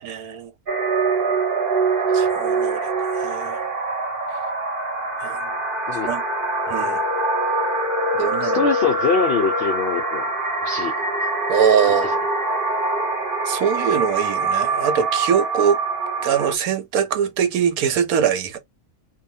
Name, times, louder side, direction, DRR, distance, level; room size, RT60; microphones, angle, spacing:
voice 1, 0.0-0.5 2.1-3.6 5.2-5.4 6.1-6.2 6.7-7.0 8.2-8.6 11.5-12.2 13.5-15.8 16.2-18.6, right 8 dB, 70° right, 1.1 m, -22 dB
sound 1, 0.7-16.6, right 3 dB, 45° right, 0.8 m, -24 dB
voice 2, 8.4-10.3 10.6-10.9 11.9-12.2, left 5 dB, 70° left, 0.6 m, -23 dB
2.7 x 2.2 x 2.6 m
omnidirectional pair, 1.6 m